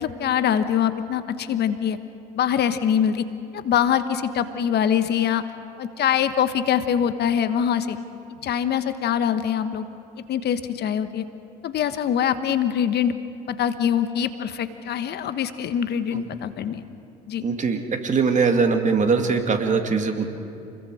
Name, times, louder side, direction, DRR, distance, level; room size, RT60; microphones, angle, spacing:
voice 1, 0.0-2.0 2.3-3.2 3.5-5.5 5.8-8.0 8.4-9.9 10.3-11.2 11.6-13.1 13.5-16.8 17.3-17.4, left 9 dB, 55° left, 11 dB, 1.2 m, -23 dB
voice 2, 17.4-20.3, right 5 dB, 40° right, 5 dB, 2.6 m, -21 dB
29.0 x 21.5 x 5.0 m, 2.7 s
hypercardioid pair, 65°, 20 cm